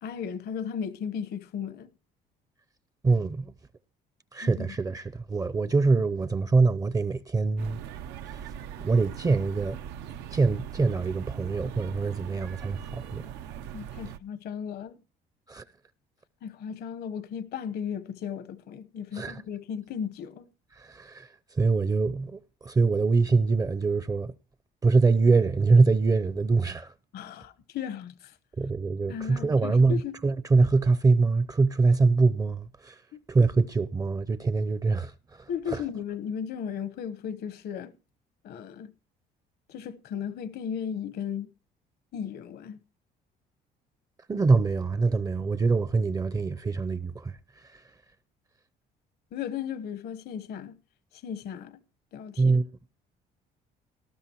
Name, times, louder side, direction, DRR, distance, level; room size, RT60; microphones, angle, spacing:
voice 1, 0.0-1.9 4.4-4.7 13.7-15.0 16.4-20.5 27.1-28.3 29.1-30.2 33.1-33.2 35.5-37.9 38.4-38.9 39.7-41.5 42.1-42.8 49.3-50.8 51.2-51.8 52.1-52.6, left 8 dB, 70° left, 1.1 m, -35 dB
voice 2, 3.0-3.5 4.3-7.8 8.8-9.8 10.3-13.3 15.5-15.6 19.1-19.4 20.8-21.3 21.5-24.3 24.8-26.9 28.6-33.0 33.3-35.8 44.3-47.3 52.4-52.6, right 3 dB, 20° right, 0.5 m, -24 dB
sound 1, 7.6-14.2, right 9 dB, 90° right, 0.7 m, -40 dB
18.5 x 12.5 x 2.9 m
cardioid pair, 110°, 17 cm